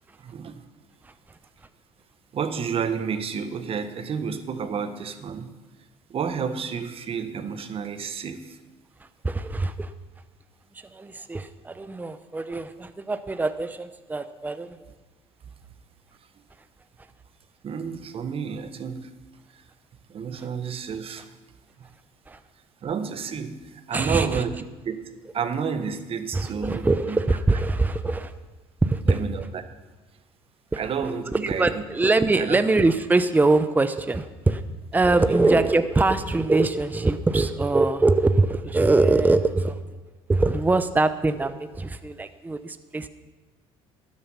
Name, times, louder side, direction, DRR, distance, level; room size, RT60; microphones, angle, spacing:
voice 1, 0.2-0.7 2.3-5.5 6.1-8.6 17.6-19.1 19.5-19.7 20.1-21.3 21.8-21.9 22.8-24.5 24.8-25.0 25.3-27.2 29.1-29.6 30.8-31.8 32.4-32.6 35.3-35.4, right 6 dB, 45° right, 9 dB, 1.3 m, -30 dB
voice 2, 9.2-9.9 10.9-14.8 22.3-22.4 23.9-24.4 26.3-28.3 28.8-29.2 30.7-30.8 31.4-34.6 34.9-39.8 40.3-43.1, right 3 dB, 15° right, 11 dB, 0.7 m, -23 dB
13.0 x 10.5 x 5.7 m, 1.3 s
supercardioid pair, 80°, 13 cm